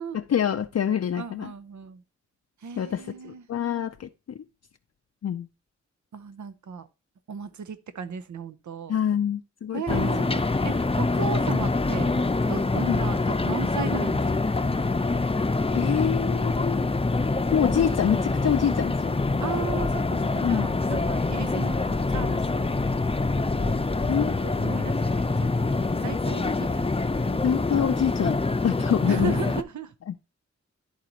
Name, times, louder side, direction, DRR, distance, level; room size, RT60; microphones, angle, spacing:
voice 1, 0.1-1.5 2.8-4.4 5.2-5.5 8.9-10.1 12.9-13.0 15.7-16.9 17.5-19.2 20.4-20.7 24.1-24.5 27.4-29.3 30.1-30.2, left 8 dB, 60° left, 0.5 m, -26 dB
voice 2, 1.2-2.0 2.6-3.5 6.1-6.9 7.3-8.9 9.7-12.2 12.5-14.9 19.4-22.7 23.6-27.3 29.1-29.9, right 6 dB, 75° right, 0.7 m, -36 dB
sound 1, 9.9-29.6, left 3 dB, 20° left, 0.6 m, -25 dB
12.0 x 4.0 x 2.9 m
cardioid pair, 45°, 29 cm